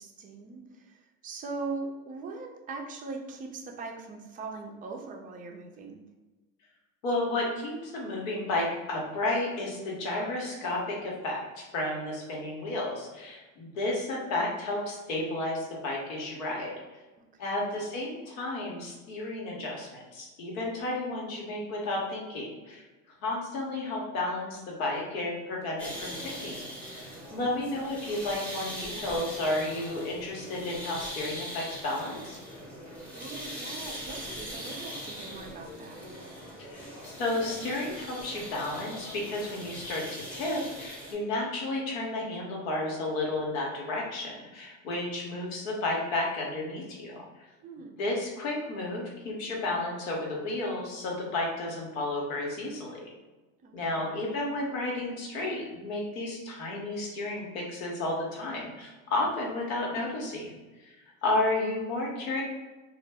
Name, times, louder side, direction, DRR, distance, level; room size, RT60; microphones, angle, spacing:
voice 1, 0.0-6.0 17.3-17.8 27.4-27.9 33.1-36.1 47.6-48.0 53.6-54.2 61.3-61.4, right 3 dB, 20° right, 2 dB, 0.4 m, -41 dB
voice 2, 7.0-16.7 17.4-22.8 23.2-26.6 26.9-32.4 36.7-47.2 48.0-53.0 53.7-60.5 60.8-61.0 61.2-62.4, left 2 dB, 80° left, -2 dB, 0.9 m, -32 dB
sound 1, 25.8-41.1, equal, 5° left, 0.8 m, -41 dB
2.1 x 2.0 x 3.4 m, 1.2 s
hypercardioid pair, 90°, 40 cm